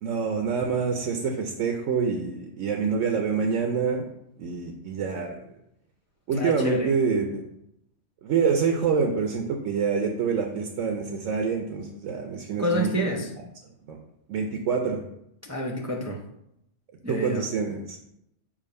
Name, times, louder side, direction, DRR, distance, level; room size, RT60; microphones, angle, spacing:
voice 1, 0.0-4.1 4.4-5.4 6.3-7.4 8.2-13.1 13.9-14.0 14.3-15.0 17.1-18.0, right 5 dB, 85° right, 3 dB, 1.0 m, -26 dB
voice 2, 6.3-6.9 12.6-13.3 15.4-16.2 17.0-17.4, equal, 20° right, -1 dB, 0.4 m, -28 dB
7.2 x 2.5 x 5.3 m, 0.80 s
omnidirectional pair, 1.3 m